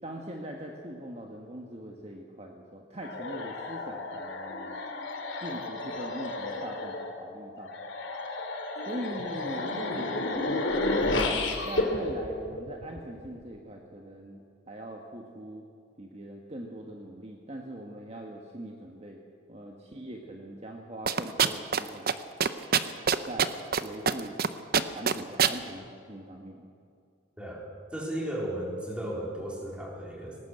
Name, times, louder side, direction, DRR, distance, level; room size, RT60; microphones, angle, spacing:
voice 1, 0.0-4.7 5.4-7.8 8.9-10.6 11.6-14.4 14.7-15.6 16.0-19.2 19.5-22.1 23.2-23.5 23.8-24.4 24.9-26.7, right 1 dB, 35° right, 1 dB, 1.5 m, -41 dB
sound 1, 3.0-13.3, left 2 dB, 80° left, 2.7 m, -32 dB
sound 2, 21.1-21.8 22.1-22.2 22.4-23.8 24.1-24.5 24.7-25.6, right 7 dB, 50° right, 0.8 m, -23 dB
voice 2, 27.4-30.4, right 1 dB, 5° right, -2 dB, 4.0 m, -35 dB
19.5 x 18.5 x 8.1 m, 2.4 s
head